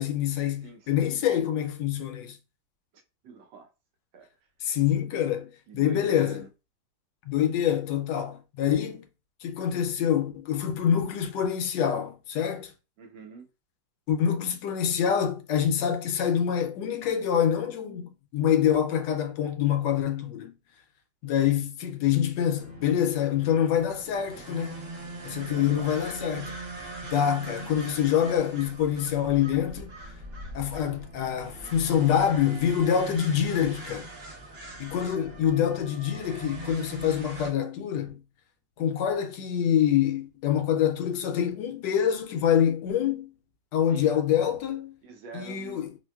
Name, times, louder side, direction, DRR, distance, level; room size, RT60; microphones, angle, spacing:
voice 1, 0.0-2.4 4.6-6.4 7.3-9.0 9.4-12.7 14.1-20.5 21.2-24.8 25.2-26.5 27.0-29.9 30.5-34.1 34.8-38.2 38.8-43.3 43.7-45.0 45.3-45.9, left 9 dB, 75° left, 1.1 m, -26 dB
voice 2, 0.6-1.5 3.2-3.7 4.1-4.3 5.7-6.5 13.0-13.5 25.5-25.9 28.1-28.2 35.1-35.4 43.9-44.1 45.0-45.9, right 4 dB, 90° right, 1.4 m, -46 dB
sound 1, 22.6-37.5, right 2 dB, 75° right, 0.5 m, -41 dB
4.4 x 2.2 x 2.2 m
omnidirectional pair, 2.0 m